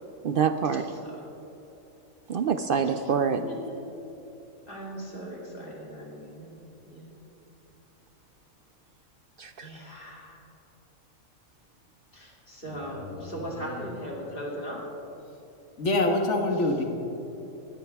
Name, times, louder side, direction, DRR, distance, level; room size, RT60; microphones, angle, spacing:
voice 1, 0.2-0.9 2.3-3.4 9.4-9.7, right 6 dB, 65° right, 9 dB, 0.5 m, -26 dB
voice 2, 3.3-3.7 4.7-7.2 9.6-10.4 12.1-14.8 16.5-16.8, equal, 40° left, -3 dB, 3.0 m, -39 dB
voice 3, 15.8-16.8, left 2 dB, 60° left, 3 dB, 1.8 m, -24 dB
19.5 x 15.5 x 3.5 m, 3.0 s
omnidirectional pair, 1.4 m